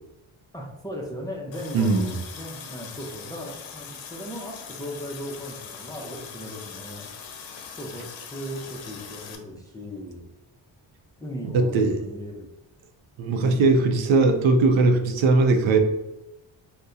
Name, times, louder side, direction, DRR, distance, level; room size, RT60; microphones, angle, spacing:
voice 1, 0.5-7.1 7.8-10.3 11.2-12.5, equal, 10° left, -2 dB, 0.4 m, -37 dB
Water tap faucet, 1.5-9.4, left 6 dB, 80° left, 0.6 m, -41 dB
voice 2, 1.7-2.1 11.5-12.0 13.2-15.8, right 3 dB, 85° right, 5 dB, 0.6 m, -19 dB
2.7 x 2.1 x 3.6 m, 0.95 s
cardioid pair, 115°, 45 cm